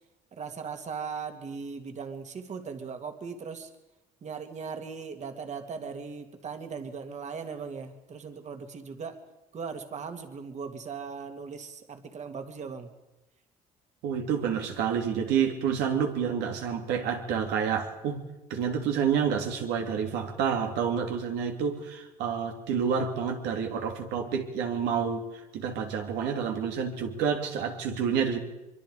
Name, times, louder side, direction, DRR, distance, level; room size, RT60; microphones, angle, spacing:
voice 1, 0.3-3.7 4.2-9.2 9.5-12.9, right 5 dB, 45° right, 6 dB, 2.5 m, -38 dB
voice 2, 14.0-18.2 18.5-28.4, right 7 dB, 90° right, 3 dB, 2.9 m, -29 dB
24.0 x 23.5 x 5.1 m, 1.0 s
cardioid pair, 110°, 17 cm